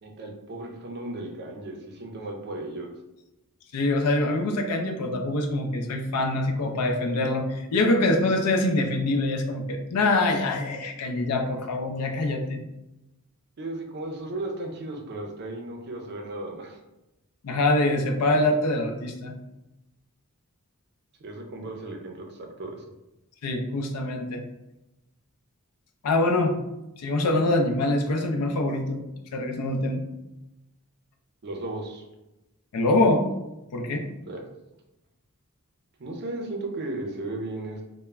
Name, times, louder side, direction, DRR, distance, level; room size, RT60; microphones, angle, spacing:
voice 1, 0.0-2.9 13.6-16.8 21.2-22.9 31.4-32.0 34.3-34.4 36.0-37.8, right 2 dB, 50° right, 2 dB, 0.5 m, -35 dB
voice 2, 3.7-12.6 17.4-19.4 23.4-24.4 26.0-26.6 27.0-29.0 29.3-30.0 32.7-33.2 33.7-34.1, left 2 dB, 90° left, 4 dB, 0.4 m, -24 dB
2.3 x 2.1 x 3.1 m, 0.96 s
head